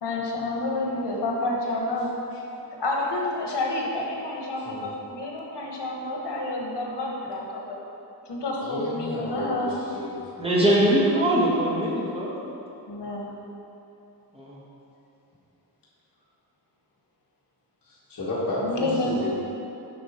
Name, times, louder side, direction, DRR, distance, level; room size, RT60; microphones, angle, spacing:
voice 1, 0.0-2.1 2.8-7.8 8.3-9.8 12.9-13.3 18.6-19.3, left 2 dB, 90° left, -1 dB, 1.3 m, -29 dB
voice 2, 8.6-10.6 17.9-19.3, left 1 dB, 55° left, -9 dB, 1.8 m, -32 dB
voice 3, 10.4-12.3 13.5-13.6 14.3-14.6, right 1 dB, 15° right, -6 dB, 1.4 m, -22 dB
7.6 x 5.8 x 4.3 m, 2.9 s
wide cardioid pair, 145°, 40 cm